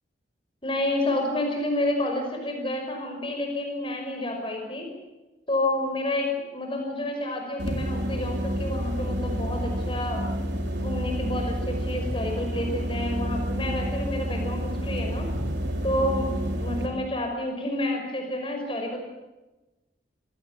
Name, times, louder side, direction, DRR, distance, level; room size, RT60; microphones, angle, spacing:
voice 1, 0.6-4.9 5.5-10.2 10.8-15.3 15.8-16.3 16.6-19.0, left 1 dB, 30° left, 3 dB, 5.6 m, -29 dB
sound 1, 7.6-16.9, equal, 70° right, 3.9 m, -29 dB
26.0 x 18.0 x 8.5 m, 1.1 s
head